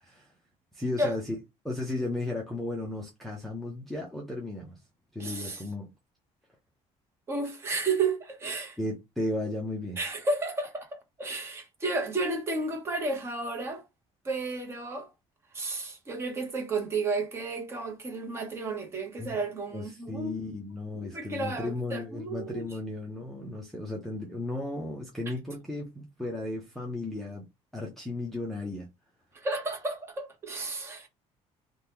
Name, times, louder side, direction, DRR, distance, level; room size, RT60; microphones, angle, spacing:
voice 1, 0.7-1.2 1.6-4.8 5.1-5.9 8.8-10.0 19.2-19.4 19.7-27.5 27.7-28.9, left 2 dB, ahead, 0.5 m, -35 dB
voice 2, 5.2-5.6 7.3-8.8 10.0-13.8 14.2-15.1 15.5-20.4 20.9-22.6 29.3-31.1, right 3 dB, 20° right, 0.8 m, -32 dB
2.8 x 2.2 x 3.4 m
cardioid pair, 175°, 12 cm